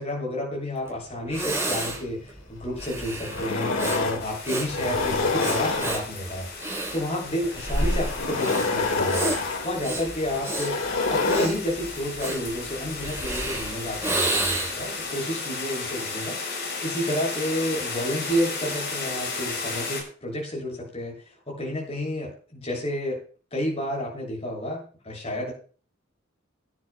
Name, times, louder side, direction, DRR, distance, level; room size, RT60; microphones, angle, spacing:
voice 1, 0.0-6.5 6.9-10.8 11.1-23.2 23.5-25.5, equal, 30° left, -1 dB, 7.0 m, -30 dB
Breathing, 0.9-1.0 1.3-14.9, right 1 dB, 15° right, 3.7 m, -30 dB
sound 1, 2.6-2.7 3.1-4.3 4.7-6.3 7.4-11.5, left 3 dB, 80° left, 1.9 m, -27 dB
sound 2, 4.2-20.0, left 4 dB, 60° left, 7.2 m, -35 dB
24.5 x 10.0 x 2.2 m, 0.39 s
head